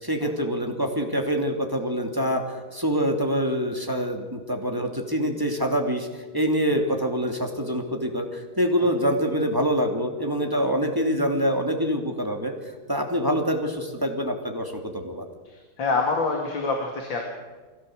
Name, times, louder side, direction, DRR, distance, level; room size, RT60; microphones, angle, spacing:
voice 1, 0.0-6.1 6.3-12.5 12.9-15.2, equal, 10° right, 3 dB, 2.8 m, -25 dB
voice 2, 15.4-17.2, left 3 dB, 65° left, 2 dB, 3.2 m, -26 dB
24.0 x 17.0 x 8.0 m, 1.3 s
omnidirectional pair, 2.3 m